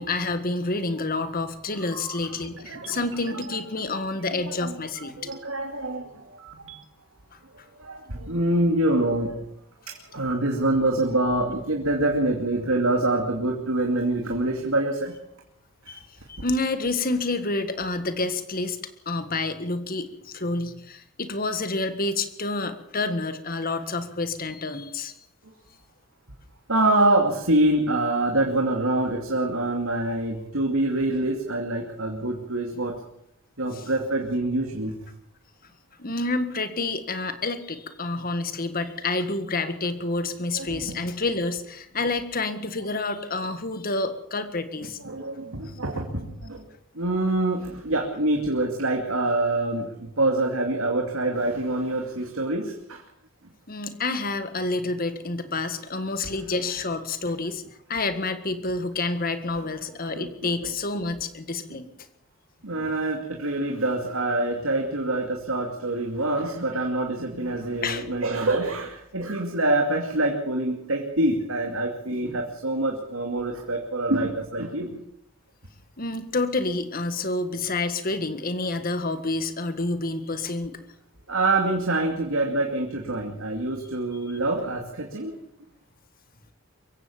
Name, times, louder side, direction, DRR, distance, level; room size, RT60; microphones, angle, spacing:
voice 1, 0.0-5.1 15.9-16.0 16.3-18.8 19.0-25.2 33.7-33.8 36.0-45.0 53.7-57.6 57.9-61.9 67.8-68.0 76.0-80.8, left 3 dB, 45° left, 10 dB, 1.7 m, -28 dB
voice 2, 1.8-2.2 2.7-3.0 4.3-4.8 5.3-6.2 6.6-6.8 7.7-9.4 9.9-15.2 15.9-16.0 26.7-33.0 33.6-34.9 40.5-41.0 45.0-46.7 46.9-53.0 56.2-56.3 59.6-59.7 60.1-60.5 62.6-75.0 81.3-85.4, right 2 dB, 85° right, 2 dB, 2.6 m, -25 dB
sound 1, 2.3-5.4 5.9-6.8, right 4 dB, 65° right, 2.8 m, -46 dB
23.5 x 15.5 x 7.3 m, 0.77 s
head